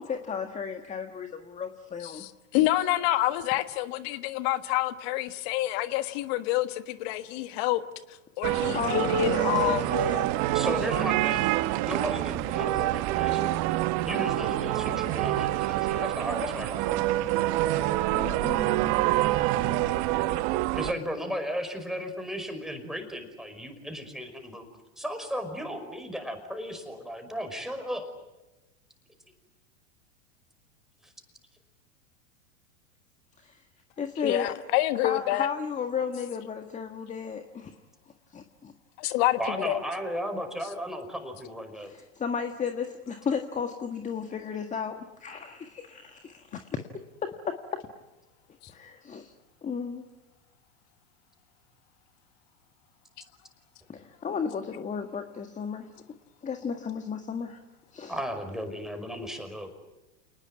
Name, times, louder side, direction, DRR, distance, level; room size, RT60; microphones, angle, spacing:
voice 1, 0.0-2.2 8.7-10.3 18.1-19.9 33.4-33.6 34.0-34.6 35.0-37.7 38.3-38.7 41.8-46.8 47.2-47.8 48.7-49.3 49.6-50.0 53.9-55.9 56.4-57.6 57.9-58.1, left 6 dB, 20° left, 6 dB, 1.7 m, -34 dB
voice 2, 2.0-7.8 8.1-9.8 12.6-12.7 34.2-35.5 39.0-39.8, left 16 dB, 50° left, 11 dB, 1.4 m, -28 dB
sound 1, 8.4-20.9, right 15 dB, 45° right, 1.2 m, -26 dB
voice 3, 10.5-11.5 11.8-13.6 14.0-17.1 20.7-24.7 25.0-28.1 39.4-41.9 58.1-59.7, equal, ahead, 6 dB, 5.3 m, -35 dB
28.5 x 20.0 x 9.7 m, 1.1 s
hypercardioid pair, 105°, 38 cm